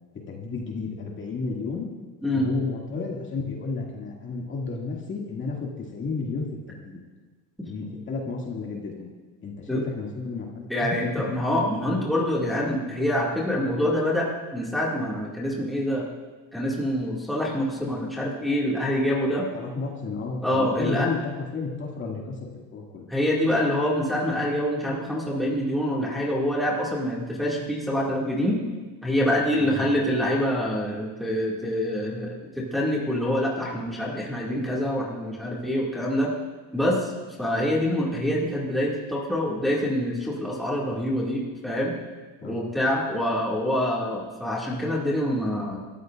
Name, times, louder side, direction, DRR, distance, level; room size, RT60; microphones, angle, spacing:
voice 1, 0.3-1.9 2.3-6.5 6.8-7.0 7.6-9.1 9.4-11.2 19.5-23.1 29.6-29.8 42.4-42.6, left 4 dB, 30° left, -1 dB, 2.2 m, -32 dB
voice 2, 10.7-16.0 16.5-19.5 20.4-21.1 23.1-28.6 29.0-36.3 36.7-37.1 37.4-41.9 42.4-45.8, left 1 dB, ahead, -5 dB, 2.1 m, -26 dB
27.0 x 13.5 x 2.5 m, 1.3 s
cardioid pair, 150°, 37 cm